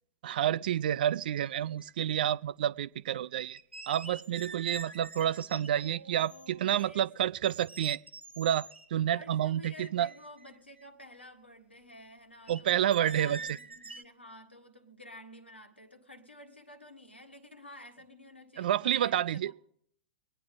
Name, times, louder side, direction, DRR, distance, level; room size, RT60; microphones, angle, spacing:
voice 1, 0.2-3.6 3.9-8.0 8.4-10.1 12.5-13.4 18.6-19.5, right 11 dB, 55° right, 0.4 m, -29 dB
sound 1, 0.9-1.0 1.2-2.2 3.5-6.8 7.4-8.9 9.4-9.5 9.8-10.8 12.5-14.0, right 3 dB, 85° right, 0.7 m, -46 dB
voice 2, 4.5-5.0 5.7-7.1 9.1-19.5, left 1 dB, 85° left, 1.5 m, -51 dB
23.5 x 9.4 x 3.8 m
figure-of-eight pair, 100°, 6 cm